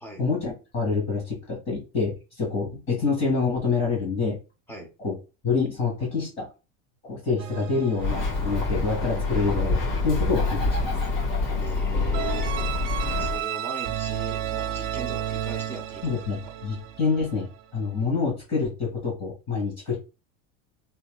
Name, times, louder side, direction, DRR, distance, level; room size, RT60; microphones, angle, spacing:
voice 1, 0.2-4.4 5.0-5.2 5.4-6.5 7.0-10.9 16.0-20.0, left 4 dB, 30° left, -3 dB, 1.9 m, -27 dB
sound 1, 7.4-9.5 12.1-17.6, right 11 dB, 75° right, 0.7 m, -33 dB
Bird, 8.0-13.4, left 3 dB, 65° left, 1.7 m, -26 dB
voice 2, 11.5-12.5 13.1-16.1, equal, 5° left, 3 dB, 0.6 m, -39 dB
3.4 x 2.8 x 2.2 m, 0.30 s
supercardioid pair, 140°, 38 cm